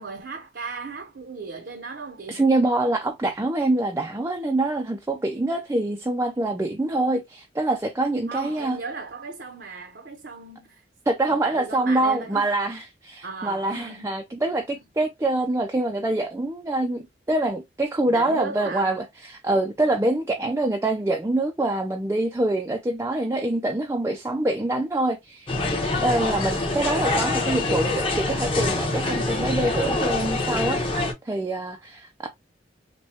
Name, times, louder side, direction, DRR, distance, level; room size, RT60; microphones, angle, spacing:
voice 1, 0.0-2.5 8.3-10.8 11.3-12.5 13.2-14.1 18.1-18.9 27.2-27.7, right 4 dB, 70° right, 0.7 m, -36 dB
voice 2, 2.3-8.8 11.1-25.5 26.0-32.3, right 2 dB, 15° right, 0.4 m, -25 dB
sound 1, 25.5-31.1, left 2 dB, 30° left, 1.1 m, -25 dB
6.2 x 2.2 x 2.7 m
head